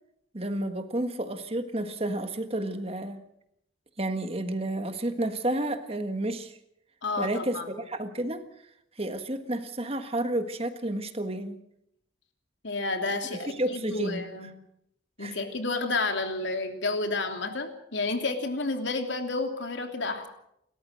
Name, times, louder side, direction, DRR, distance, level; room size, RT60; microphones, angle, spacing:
voice 1, 0.3-3.2 4.0-6.5 7.2-8.4 9.0-11.6 13.6-14.2 15.2-15.4, right 1 dB, 30° right, 8 dB, 1.6 m, -31 dB
voice 2, 7.0-7.7 12.6-14.5 15.2-20.3, left 3 dB, 70° left, 5 dB, 3.1 m, -30 dB
29.5 x 14.0 x 6.5 m, 0.76 s
head